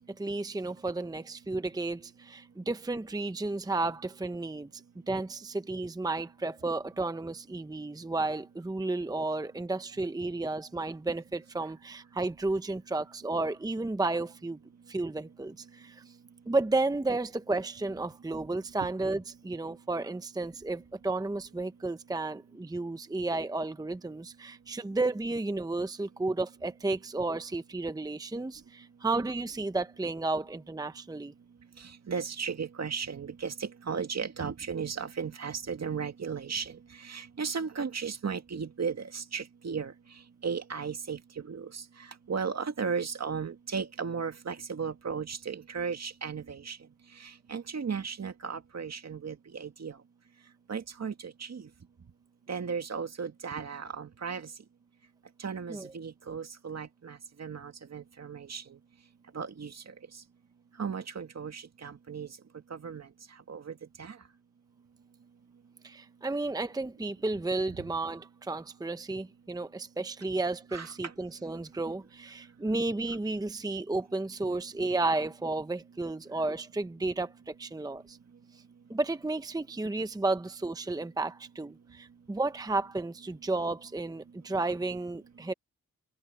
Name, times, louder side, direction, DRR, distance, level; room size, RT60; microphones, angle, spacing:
voice 1, 0.0-4.7 5.1-14.6 14.9-16.0 16.5-31.3 55.7-55.9 65.8-78.2 78.9-85.5, right 2 dB, 10° right, 0.7 m, -32 dB
voice 2, 32.1-36.7 37.0-39.9 40.4-41.2 41.5-41.7 42.3-46.8 47.5-49.9 50.7-51.6 52.5-54.5 55.4-58.6 59.3-59.7 60.8-62.3 62.7-63.1 63.5-64.1 70.7-70.9, right 6 dB, 55° right, 2.1 m, -35 dB
wide cardioid pair, 95°, 31 cm